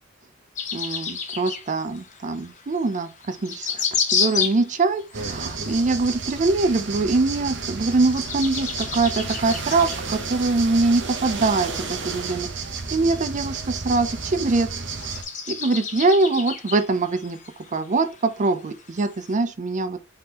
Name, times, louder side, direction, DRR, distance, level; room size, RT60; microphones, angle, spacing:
sound 1, 0.6-19.3, left 6 dB, 40° left, 0.9 m, -32 dB
voice 1, 0.7-12.5 12.9-14.7 15.5-17.4 17.7-20.0, right 3 dB, 35° right, 0.5 m, -23 dB
sound 2, 5.1-15.2, right 4 dB, 60° right, 0.9 m, -31 dB
4.8 x 3.7 x 2.9 m
head